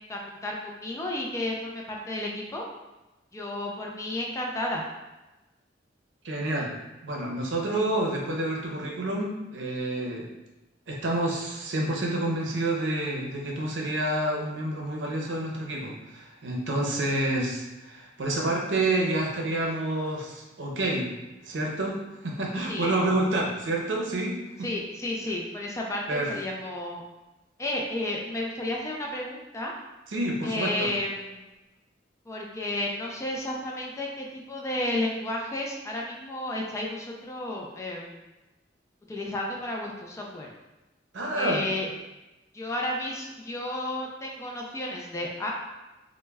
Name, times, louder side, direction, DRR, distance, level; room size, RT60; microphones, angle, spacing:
voice 1, 0.1-2.7 3.3-4.8 22.7-23.0 24.6-27.0 27.6-29.7 30.4-31.4 32.3-38.2 39.1-40.5 41.3-41.9 42.5-45.5, left 1 dB, 15° left, -2 dB, 0.3 m, -32 dB
voice 2, 6.2-6.7 7.0-10.3 10.9-21.1 21.4-24.7 26.1-26.3 30.1-30.9 41.1-41.7, right 1 dB, 85° right, -1 dB, 0.6 m, -28 dB
2.1 x 2.1 x 3.3 m, 1.0 s
head